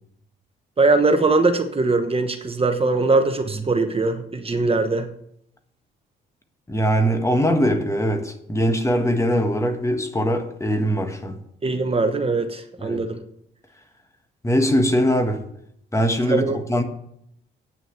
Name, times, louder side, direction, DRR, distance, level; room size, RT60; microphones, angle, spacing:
voice 1, 0.8-5.1 11.6-13.2 16.3-16.6, right 3 dB, 30° right, 1.1 m, -21 dB
voice 2, 6.7-11.4 12.8-13.0 14.4-15.4 15.9-16.8, equal, 15° left, 1.5 m, -21 dB
9.3 x 6.3 x 8.0 m
cardioid pair, 90°, 20 cm